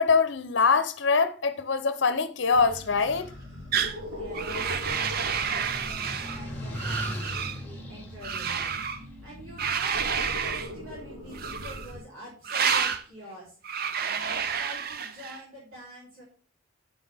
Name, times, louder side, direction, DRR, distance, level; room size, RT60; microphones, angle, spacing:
voice 1, 0.0-3.3, left 4 dB, 60° left, 0.7 m, -23 dB
sound 1, 2.5-12.0, left 1 dB, 70° right, 3.5 m, -41 dB
sound 2, 3.5-9.8, equal, 10° left, 1.4 m, -39 dB
Screeching Tyres, 3.7-4.0 4.3-6.4 6.7-7.6 8.2-9.0 9.6-10.7 11.3-11.9 12.4-13.0 13.6-15.4, right 7 dB, 45° right, 0.5 m, -29 dB
voice 2, 3.9-13.6 14.0-16.2, right 1 dB, 85° right, 3.6 m, -46 dB
7.9 x 6.1 x 3.4 m
head